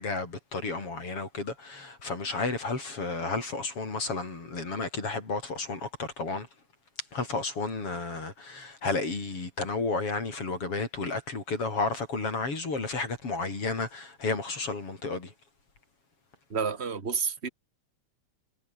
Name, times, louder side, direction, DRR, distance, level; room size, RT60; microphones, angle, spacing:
voice 1, 0.0-6.5 7.1-15.3, left 3 dB, 45° left, 5.9 m, -32 dB
voice 2, 16.5-17.5, right 6 dB, 20° right, 2.4 m, -30 dB
omnidirectional pair, 3.7 m